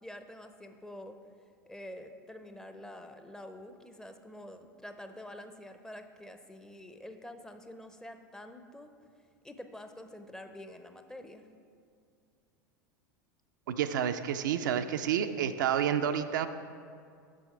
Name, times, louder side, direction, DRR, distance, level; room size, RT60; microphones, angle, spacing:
voice 1, 0.0-1.2 1.7-9.0 9.4-11.5, left 1 dB, 5° left, 7 dB, 0.5 m, -47 dB
voice 2, 13.7-16.5, right 9 dB, 70° right, 8 dB, 0.4 m, -29 dB
7.5 x 6.3 x 4.9 m, 2.3 s
hypercardioid pair, 85°, 11 cm